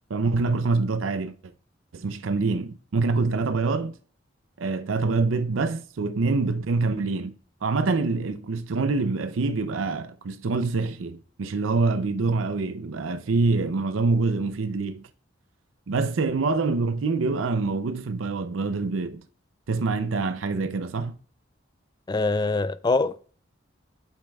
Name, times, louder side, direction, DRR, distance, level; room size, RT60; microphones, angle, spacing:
voice 1, 0.1-1.5 1.9-4.0 4.6-7.3 7.6-15.1 15.9-19.2 19.7-21.2, right 3 dB, 90° right, 0.5 m, -25 dB
voice 2, 22.1-23.2, left 3 dB, 20° left, 0.4 m, -24 dB
8.7 x 8.4 x 2.3 m
head